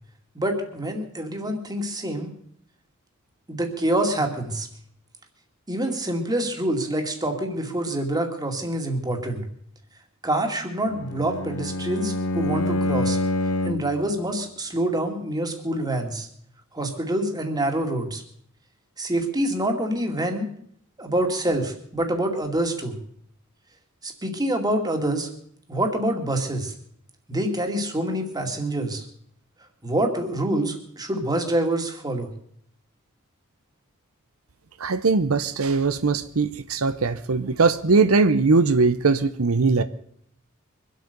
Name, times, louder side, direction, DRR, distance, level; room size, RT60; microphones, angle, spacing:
voice 1, 0.3-2.3 3.5-4.7 5.7-9.4 10.2-13.2 13.6-16.3 16.7-18.2 19.0-20.5 21.0-23.0 24.0-25.3 25.7-26.7 27.3-29.0 29.8-32.3, right 1 dB, 20° right, 4 dB, 2.4 m, -26 dB
Bowed string instrument, 10.8-14.0, left 2 dB, 85° left, 1.1 m, -26 dB
voice 2, 34.8-39.8, right 4 dB, 85° right, 12 dB, 0.8 m, -20 dB
24.0 x 8.4 x 6.8 m, 0.66 s
head